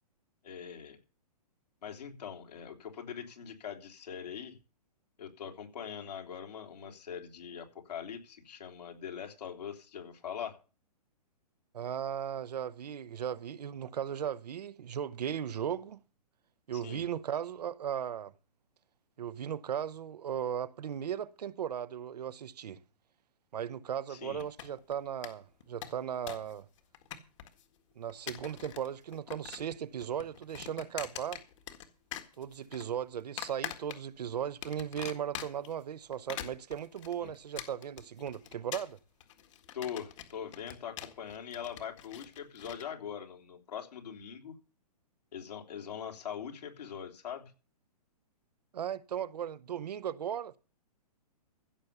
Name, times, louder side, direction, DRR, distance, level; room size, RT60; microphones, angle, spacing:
voice 1, 0.4-1.0 1.8-4.5 5.2-10.6 16.7-17.1 24.1-24.4 37.2-37.3 39.7-44.5 45.3-47.5, left 8 dB, 75° left, 3.4 m, -42 dB
voice 2, 11.7-16.0 16.7-18.3 19.2-22.8 23.5-26.7 28.0-31.4 32.4-39.0 48.7-50.6, right 9 dB, 80° right, 0.9 m, -37 dB
sound 1, 24.4-24.9 25.2-25.3 25.6-26.5 26.8-27.6 28.1-28.9 29.1-29.8 30.0-31.9 32.1-32.8 33.4-34.2 34.6-35.7 36.1-42.8, left 11 dB, 50° left, 1.8 m, -43 dB
15.5 x 7.1 x 6.7 m
hypercardioid pair, 155°, 21 cm